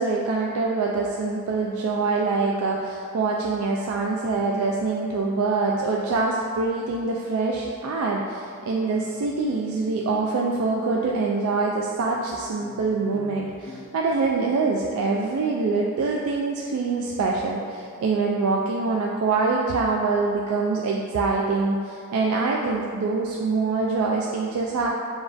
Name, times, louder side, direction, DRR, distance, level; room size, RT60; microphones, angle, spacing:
voice 1, 0.0-24.9, right 3 dB, 75° right, -2 dB, 0.3 m, -25 dB
Guitar, 8.7-13.8, left 3 dB, 45° left, 0.4 m, -45 dB
6.9 x 2.4 x 2.6 m, 2.3 s
head